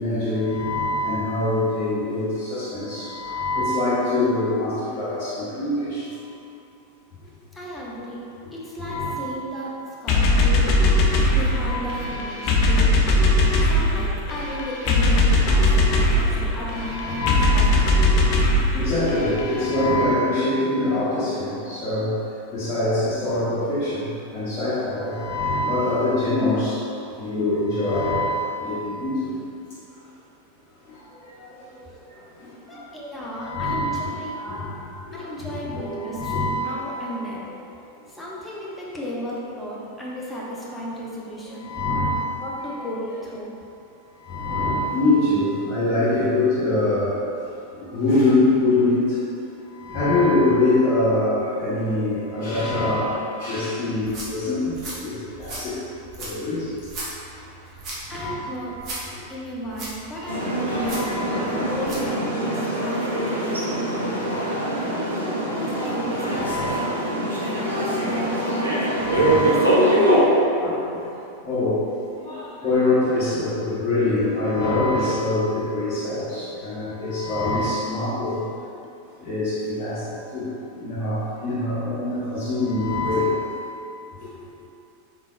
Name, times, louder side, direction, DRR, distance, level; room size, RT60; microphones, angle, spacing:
voice 1, 0.0-6.0 8.8-9.1 11.6-11.9 13.9-14.0 16.9-17.6 18.7-22.1 22.5-26.7 27.2-29.3 32.7-32.8 33.4-34.7 35.1-35.2 35.7-36.8 37.4-37.5 41.6-42.3 44.3-47.1 47.9-49.2 49.8-55.8 56.2-56.7 58.1-58.3 60.5-61.7 63.3-63.5 66.3-66.9 67.5-67.6 68.4-69.6 69.9-71.0 71.4-71.8 72.2-78.4 79.2-80.0 80.3-80.5 80.8-83.5, left 2 dB, 25° left, -14 dB, 1.1 m, -24 dB
voice 2, 7.5-9.8 10.0-18.0 32.7-34.4 35.1-37.5 38.1-41.7 42.1-43.6 55.5-55.6 57.6-58.8 59.3-61.1 61.4-63.9 64.9-67.0 67.6-68.9 69.4-69.8 70.3-70.4 76.6-76.7, equal, 10° left, -6 dB, 0.8 m, -34 dB
sound 1, 10.1-19.6, left 1 dB, 40° left, 0.4 m, -20 dB
sound 2, 53.9-62.1, right 1 dB, 35° right, 1.0 m, -38 dB
sound 3, 60.3-70.2, right 1 dB, 80° right, 0.7 m, -23 dB
4.1 x 3.9 x 2.5 m, 2.7 s
figure-of-eight pair, 90°, 0 cm